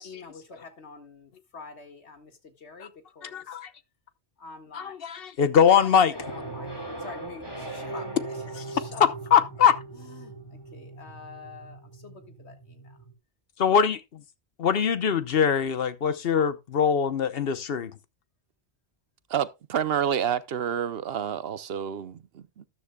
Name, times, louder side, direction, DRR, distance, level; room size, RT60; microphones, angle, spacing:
voice 1, 0.0-3.6 4.4-5.0 5.8-9.1 9.9-13.0, left 4 dB, 90° left, 2.0 m, -46 dB
voice 2, 3.2-3.7 4.7-6.1 8.6-8.7 9.3-9.7 13.6-14.0 14.6-17.9, left 7 dB, 65° left, 1.1 m, -22 dB
sound 1, 6.1-13.1, right 2 dB, 20° left, 2.9 m, -39 dB
voice 3, 19.3-22.7, right 8 dB, 65° right, 0.9 m, -29 dB
13.5 x 10.0 x 2.2 m
omnidirectional pair, 1.1 m